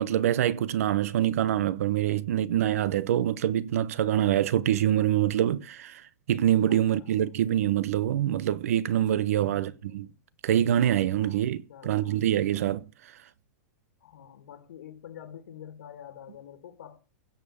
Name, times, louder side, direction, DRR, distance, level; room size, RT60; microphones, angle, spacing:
voice 1, 0.0-6.0 6.3-10.1 10.4-12.8, right 11 dB, 60° right, 1.0 m, -25 dB
voice 2, 6.7-7.2 9.4-10.2 11.2-12.2 14.0-17.0, left 9 dB, 80° left, 2.4 m, -47 dB
16.5 x 5.7 x 8.7 m
supercardioid pair, 175°, 9 cm